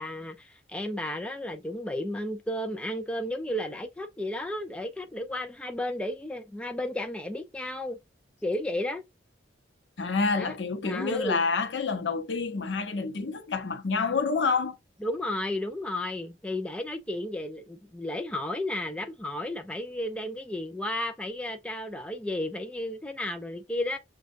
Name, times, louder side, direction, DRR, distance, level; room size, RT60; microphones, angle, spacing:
voice 1, 0.0-8.0 8.4-9.0 10.4-10.6 10.8-11.4 15.0-24.0, left 1 dB, 5° left, 0.3 m, -33 dB
voice 2, 10.0-14.8, left 4 dB, 65° left, 0.7 m, -28 dB
6.2 x 2.3 x 2.5 m
head